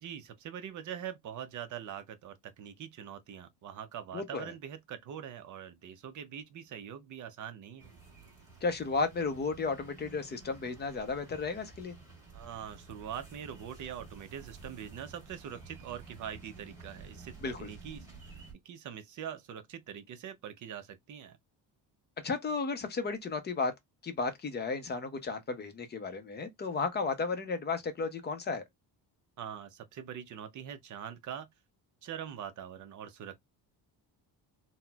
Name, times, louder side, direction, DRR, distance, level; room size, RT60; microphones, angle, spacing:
voice 1, 0.0-7.9 12.3-18.4 18.6-21.4 29.4-31.5 32.0-33.4, right 9 dB, 45° right, 0.5 m, -43 dB
voice 2, 4.1-4.5 8.6-11.9 17.4-17.7 22.2-23.7 24.0-28.6, left 4 dB, 25° left, 0.4 m, -34 dB
sound 1, 7.8-18.5, right 4 dB, 10° right, 1.4 m, -51 dB
4.0 x 2.0 x 2.2 m
cardioid pair, 175°, 44 cm